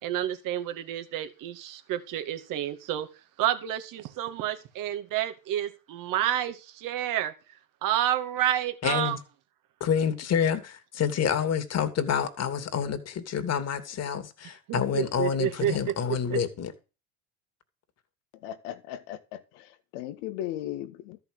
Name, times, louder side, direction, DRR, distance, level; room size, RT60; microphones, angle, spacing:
voice 1, 0.0-3.1 3.4-7.3 7.8-9.2 14.7-16.4, right 12 dB, 55° right, 2.2 m, -29 dB
voice 2, 8.8-9.2 9.8-16.7, left 7 dB, 40° left, 2.6 m, -28 dB
voice 3, 18.4-21.2, left 12 dB, 70° left, 1.7 m, -37 dB
13.5 x 5.8 x 7.9 m
hypercardioid pair, 80°, 38 cm